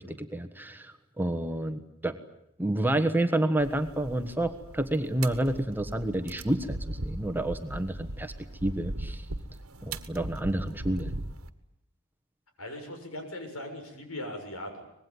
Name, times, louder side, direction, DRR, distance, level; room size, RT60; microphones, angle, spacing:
voice 1, 0.0-2.1 2.6-8.3 8.6-9.2 9.8-11.1, right 1 dB, 10° right, 8 dB, 1.3 m, -29 dB
sound 1, 3.6-11.5, right 1 dB, 80° right, 1.6 m, -39 dB
voice 2, 12.6-14.9, left 1 dB, 80° left, 5 dB, 6.8 m, -39 dB
25.0 x 20.5 x 9.5 m, 0.80 s
head